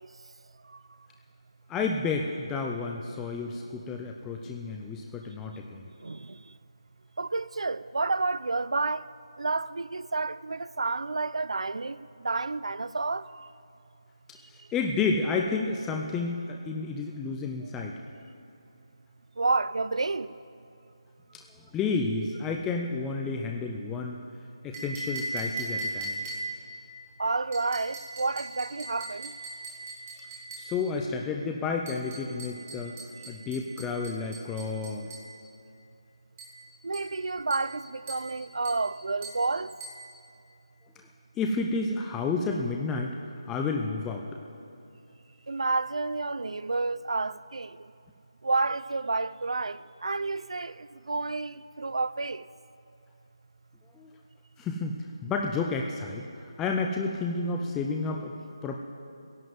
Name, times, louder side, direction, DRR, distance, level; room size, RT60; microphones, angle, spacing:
voice 1, 1.7-5.8 14.5-18.0 21.3-24.2 24.6-26.2 30.6-33.0 33.3-35.1 41.4-43.2 43.5-44.4 53.9-54.1 54.6-58.3 58.6-58.8, left 4 dB, 5° left, 0.3 m, -31 dB
voice 2, 7.2-9.0 9.4-12.0 12.2-13.5 19.4-20.3 27.2-29.3 36.8-39.7 45.5-47.7 48.4-50.7 51.1-52.4, right 3 dB, 75° right, 0.5 m, -30 dB
sound 1, 24.7-26.7 27.5-30.8 31.9-35.3 36.4-36.6 36.9-37.2 37.5-37.8 38.1-38.3 38.6-38.9 39.2-39.5 39.8-40.1, right 2 dB, 25° right, 2.6 m, -39 dB
15.0 x 11.0 x 7.7 m
figure-of-eight pair, 175°, 3 cm